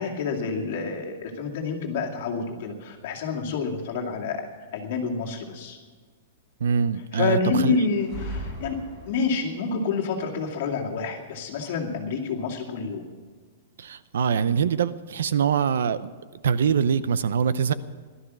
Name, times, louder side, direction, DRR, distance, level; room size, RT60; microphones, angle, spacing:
voice 1, 0.0-4.4 4.7-5.8 7.1-13.0, left 4 dB, 40° left, 0 dB, 2.2 m, -28 dB
voice 2, 6.6-7.8 13.8-16.1 16.4-17.7, right 7 dB, 85° right, 15 dB, 0.7 m, -23 dB
sound 1, 7.9-9.5, equal, 10° right, 5.6 m, -37 dB
16.5 x 12.5 x 6.2 m, 1.5 s
supercardioid pair, 180°, 0 cm